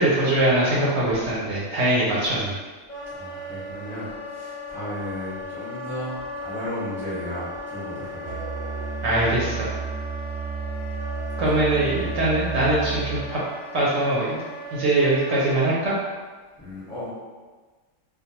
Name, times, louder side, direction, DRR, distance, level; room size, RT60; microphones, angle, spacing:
voice 1, 0.0-2.6 9.0-9.7 11.4-13.4 13.7-14.4 14.7-16.0, right 1 dB, 65° right, -7 dB, 0.8 m, -22 dB
Wind instrument woodwind instrument, 2.9-15.7, left 1 dB, 45° left, 0.7 m, -37 dB
voice 2, 3.0-8.4 9.2-9.4 12.0-12.1 16.6-17.1, equal, ahead, -11 dB, 0.8 m, -35 dB
Musical instrument, 8.2-13.3, right 6 dB, 45° right, 0.4 m, -32 dB
2.2 x 2.1 x 2.8 m, 1.4 s
omnidirectional pair, 1.3 m